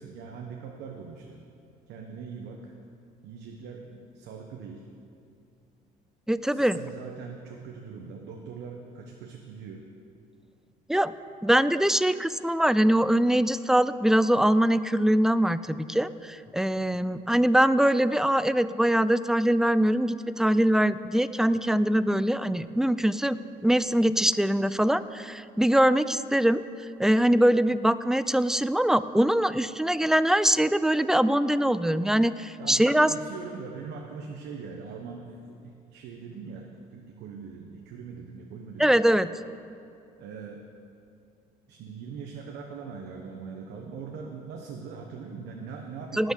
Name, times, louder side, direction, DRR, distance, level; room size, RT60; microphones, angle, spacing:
voice 1, 0.0-1.4 1.9-2.7 3.2-4.8 6.4-9.9 16.8-17.1 32.6-38.9 40.2-40.7 41.7-46.3, right 5 dB, 80° right, 1 dB, 1.1 m, -41 dB
voice 2, 6.3-6.8 10.9-11.1 11.4-26.6 27.0-33.1 38.8-39.3 46.1-46.3, right 1 dB, 5° right, 15 dB, 0.3 m, -23 dB
18.5 x 6.3 x 6.5 m, 2.5 s
cardioid pair, 110°, 17 cm